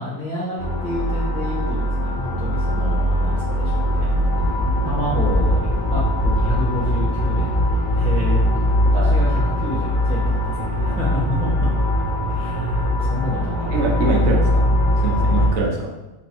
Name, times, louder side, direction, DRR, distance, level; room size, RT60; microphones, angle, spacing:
voice 1, 0.0-4.1 4.5-7.6 7.9-11.5 12.2-14.3, equal, 5° left, -9 dB, 0.5 m, -30 dB
sound 1, 0.6-15.5, equal, 55° left, 1.0 m, -20 dB
voice 2, 13.7-14.7 15.0-15.9, right 3 dB, 80° right, -1 dB, 1.2 m, -24 dB
3.0 x 2.6 x 4.2 m, 1.0 s
omnidirectional pair, 1.4 m